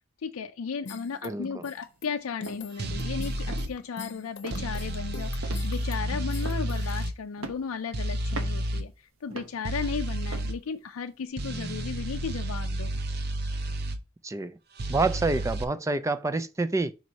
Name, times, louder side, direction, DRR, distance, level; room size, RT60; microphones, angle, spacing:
voice 1, 0.2-12.9, left 6 dB, 80° left, 0.4 m, -35 dB
sound 1, 0.9-7.1, left 3 dB, 55° left, 0.8 m, -43 dB
voice 2, 1.2-1.7 14.2-14.6 14.9-16.9, right 3 dB, 15° right, 0.3 m, -28 dB
sound 2, 1.8-2.1 2.4-2.7 3.2-3.3 3.5-4.1 4.4-4.8 5.4-5.9 6.4-6.9 7.4-7.8 8.3-8.7 9.3-9.6 10.3-10.6 11.1-11.2, right 3 dB, 70° right, 0.9 m, -40 dB
sound 3, 2.8-3.7 4.5-7.1 7.9-8.8 9.6-10.6 11.4-14.0 14.8-15.6, right 1 dB, 50° right, 0.7 m, -31 dB
5.2 x 4.6 x 4.0 m
head